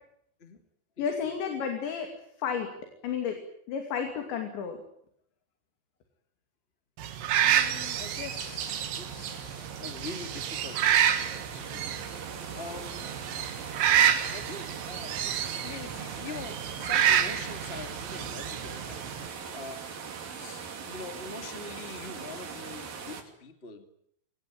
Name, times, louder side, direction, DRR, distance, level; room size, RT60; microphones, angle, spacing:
voice 1, 1.0-2.1 2.4-2.7 3.0-3.4 3.7-4.8, left 7 dB, 70° left, 4 dB, 4.8 m, -31 dB
sound 1, 7.0-19.3, right 9 dB, 75° right, 4.0 m, -29 dB
voice 2, 7.3-11.9 12.5-13.0 14.3-19.0 19.5-19.9 20.4-23.8, left 4 dB, 25° left, 6 dB, 1.3 m, -44 dB
sound 2, 7.5-23.2, right 6 dB, 55° right, 4.3 m, -41 dB
24.5 x 19.5 x 9.3 m, 0.71 s
omnidirectional pair, 5.4 m